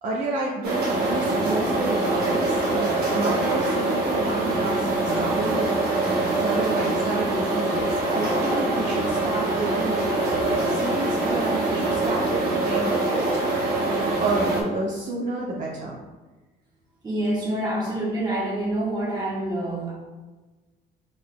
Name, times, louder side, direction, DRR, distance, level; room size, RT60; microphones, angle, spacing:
voice 1, 0.0-13.6 14.2-16.0, right 2 dB, 45° right, -3 dB, 0.6 m, -30 dB
sound 1, 0.6-14.6, right 2 dB, 70° right, 1.0 m, -24 dB
voice 2, 17.0-19.9, right 1 dB, 25° right, -5 dB, 1.2 m, -27 dB
4.5 x 3.6 x 2.2 m, 1.2 s
cardioid pair, 110°, 17 cm